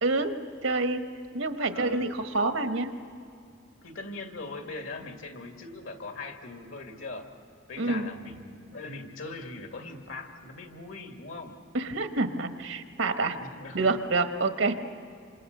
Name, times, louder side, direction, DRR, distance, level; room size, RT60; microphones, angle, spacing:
voice 1, 0.0-0.3 0.6-2.9 7.8-8.1 11.7-13.4 13.7-14.7, right 3 dB, 90° right, 7 dB, 1.3 m, -27 dB
voice 2, 1.6-2.0 3.8-7.3 7.7-11.6 13.3-13.8 14.7-14.8, left 3 dB, 85° left, 3 dB, 2.4 m, -40 dB
28.0 x 26.5 x 6.7 m, 2.5 s
head